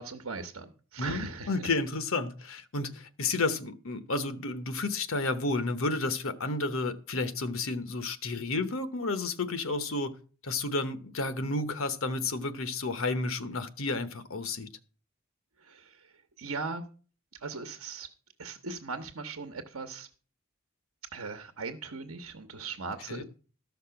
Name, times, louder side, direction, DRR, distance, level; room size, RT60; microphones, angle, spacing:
voice 1, 0.0-1.7 15.6-16.8 17.4-18.1 18.4-20.1 21.1-23.2, right 4 dB, 80° right, 1.0 m, -39 dB
voice 2, 1.0-10.1 10.4-14.7 23.1-23.2, left 3 dB, 75° left, 1.0 m, -31 dB
13.5 x 5.8 x 5.8 m
head